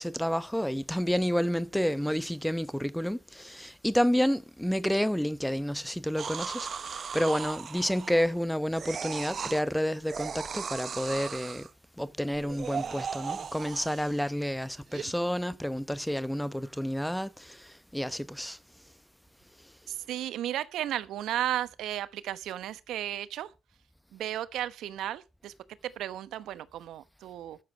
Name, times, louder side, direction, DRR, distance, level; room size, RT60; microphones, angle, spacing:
voice 1, 0.0-11.7 12.0-18.6, equal, ahead, 0.8 m, -30 dB
sound 1, 6.2-8.4 8.7-9.6 10.0-11.7 12.3-14.3 14.9-15.0, right 6 dB, 45° right, 0.6 m, -37 dB
voice 2, 19.9-23.5 24.1-25.5 25.8-27.6, right 12 dB, 80° right, 0.9 m, -34 dB
13.0 x 7.2 x 5.2 m
cardioid pair, 90°, 0 cm